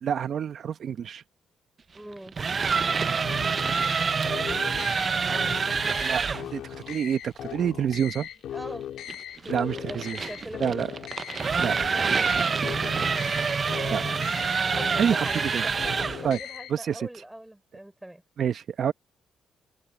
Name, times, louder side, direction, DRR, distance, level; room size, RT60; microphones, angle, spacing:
voice 1, 0.0-1.2 6.0-6.2 6.5-8.3 9.5-10.2 10.6-10.9 11.6-11.8 13.9-14.0 15.0-15.6 16.2-16.4 16.7-17.2 18.4-18.9, right 8 dB, 60° right, 1.0 m, -27 dB
voice 2, 1.9-2.4 4.4-5.6 6.3-6.4 8.5-8.9 9.4-10.0 10.3-10.9 11.7-13.1 13.7-14.5 14.8-18.2, right 1 dB, 5° right, 5.2 m, -42 dB
sound 1, 2.2-6.5 9.1-16.3, right 5 dB, 40° right, 0.7 m, -27 dB
sound 2, 3.2-16.7, left 11 dB, 75° left, 2.4 m, -39 dB
cardioid pair, 90°, 0 cm